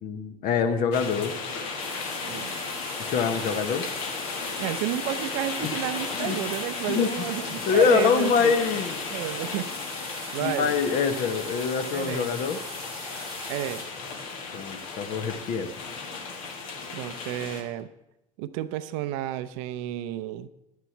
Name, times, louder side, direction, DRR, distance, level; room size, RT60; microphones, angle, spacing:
voice 1, 0.0-1.4 3.1-3.9 5.6-5.8 6.1-6.4 6.9-7.1 7.7-9.0 10.4-12.6 14.5-15.7, left 6 dB, 50° left, 8 dB, 1.1 m, -25 dB
sound 1, 0.9-17.6, left 4 dB, 70° left, 1.6 m, -35 dB
sound 2, 1.8-13.8, left 1 dB, 85° left, 2.7 m, -39 dB
voice 2, 4.6-9.7 10.3-10.7 11.9-12.3 13.5-13.9 16.9-17.9 18.4-20.5, right 13 dB, 60° right, 14 dB, 0.6 m, -31 dB
11.0 x 9.4 x 4.4 m, 0.90 s
hypercardioid pair, 65°, 18 cm